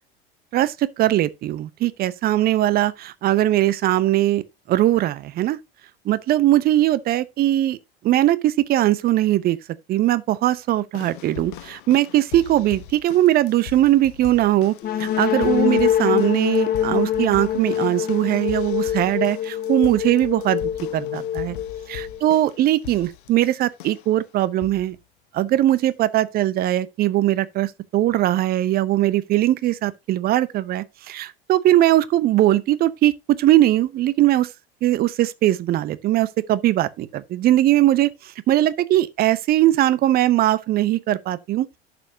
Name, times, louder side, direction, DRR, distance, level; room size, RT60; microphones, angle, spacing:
voice 1, 0.5-5.6 6.0-7.8 8.0-9.6 9.9-20.6 20.9-21.6 21.9-25.0 25.3-34.5 34.8-41.7, right 14 dB, 30° right, 0.8 m, -20 dB
sound 1, 10.9-24.2 24.6-25.0 25.8-25.9, left 11 dB, 55° left, 0.9 m, -41 dB
sound 2, 14.8-22.5, left 10 dB, 30° left, 1.4 m, -24 dB
11.5 x 6.9 x 2.8 m
figure-of-eight pair, 75°, 30 cm